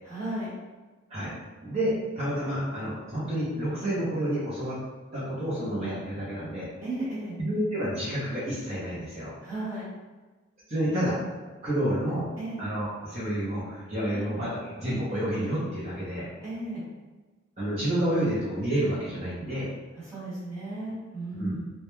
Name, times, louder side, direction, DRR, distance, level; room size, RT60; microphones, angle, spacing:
voice 1, 0.0-0.5 6.8-7.4 9.4-9.8 12.4-12.6 14.0-14.2 16.4-16.8 20.0-21.7, right 1 dB, 15° right, -11 dB, 1.1 m, -34 dB
voice 2, 1.6-4.8 5.1-6.7 7.4-9.3 10.7-11.2 11.6-12.2 12.6-16.3 17.6-19.7 21.3-21.6, right 1 dB, 30° right, -9 dB, 0.6 m, -29 dB
2.2 x 2.1 x 3.0 m, 1.3 s
head